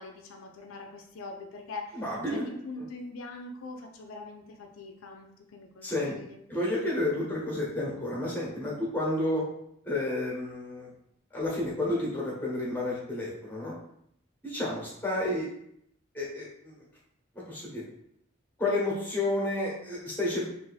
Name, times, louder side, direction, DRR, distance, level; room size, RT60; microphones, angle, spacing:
voice 1, 0.0-2.0 2.3-6.4, left 3 dB, 70° left, 3 dB, 0.4 m, -43 dB
voice 2, 1.9-2.5 2.8-2.9 5.8-6.1 6.5-9.4 9.8-10.9 11.3-13.7 14.4-15.4 16.1-16.7 17.5-17.8 18.6-20.4, left 1 dB, 10° left, -5 dB, 0.9 m, -30 dB
2.6 x 2.5 x 3.9 m, 0.74 s
head